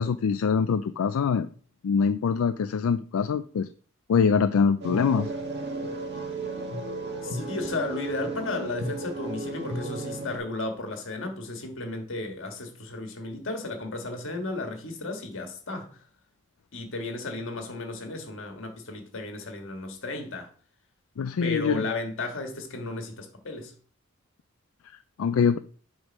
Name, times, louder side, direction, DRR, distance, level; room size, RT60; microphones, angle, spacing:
voice 1, 0.0-1.5 1.8-3.7 4.1-5.3 21.2-21.9 25.2-25.6, left 6 dB, 85° left, 0.4 m, -24 dB
sound 1, 4.8-10.4, right 2 dB, 55° right, 1.5 m, -34 dB
voice 2, 7.2-16.0 16.7-20.5 21.4-23.7, left 2 dB, 65° left, 1.6 m, -34 dB
7.9 x 3.4 x 5.4 m
head